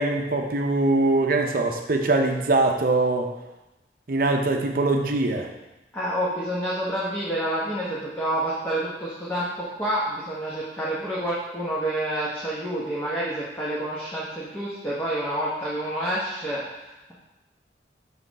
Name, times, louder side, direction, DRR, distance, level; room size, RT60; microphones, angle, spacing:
voice 1, 0.0-3.3 4.1-5.5, right 2 dB, 50° right, 3 dB, 0.7 m, -22 dB
voice 2, 5.9-17.1, right 1 dB, 15° left, -7 dB, 1.0 m, -28 dB
6.5 x 5.6 x 4.1 m, 1.0 s
head